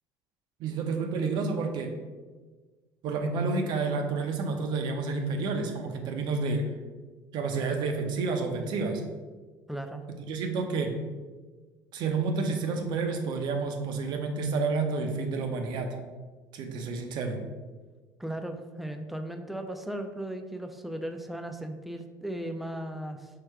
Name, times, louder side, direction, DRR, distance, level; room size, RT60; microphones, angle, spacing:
voice 1, 0.6-1.9 3.0-6.6 7.3-9.0 10.3-10.9 11.9-15.9 16.5-17.4, right 4 dB, 65° right, 4 dB, 0.6 m, -29 dB
voice 2, 9.7-10.0 18.2-23.3, right 1 dB, ahead, 6 dB, 0.3 m, -36 dB
4.7 x 2.2 x 4.6 m, 1.4 s
cardioid pair, 125°, 8 cm